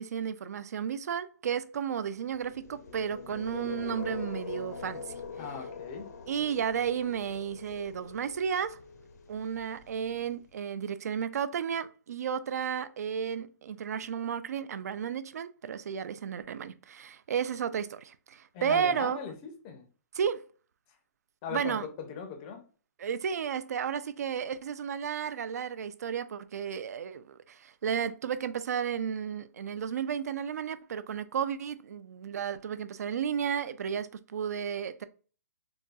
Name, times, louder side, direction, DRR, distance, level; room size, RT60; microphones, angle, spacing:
voice 1, 0.0-5.2 6.3-8.8 9.3-19.2 20.1-20.4 21.5-21.9 23.0-35.0, right 7 dB, 65° right, 0.3 m, -33 dB
sound 1, 2.3-10.4, left 5 dB, 70° left, 0.6 m, -43 dB
voice 2, 5.4-6.1 18.5-19.9 21.4-22.6, left 6 dB, 20° left, 0.5 m, -39 dB
4.0 x 2.2 x 2.3 m
hypercardioid pair, 170°, 9 cm